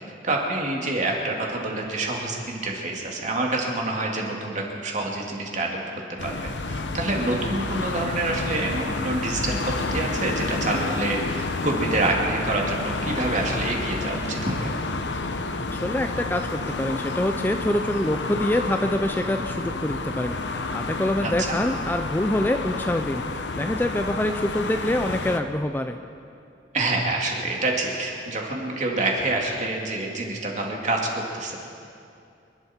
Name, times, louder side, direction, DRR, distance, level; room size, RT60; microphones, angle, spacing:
voice 1, 0.2-5.7 6.2-14.7 21.2-21.6 26.7-31.6, right 2 dB, 45° right, -1 dB, 2.5 m, -27 dB
sound 1, 6.2-25.4, left 3 dB, 75° left, 0.9 m, -30 dB
voice 2, 15.7-26.0, left 1 dB, 10° left, 6 dB, 0.5 m, -26 dB
26.0 x 11.5 x 4.4 m, 2.5 s
head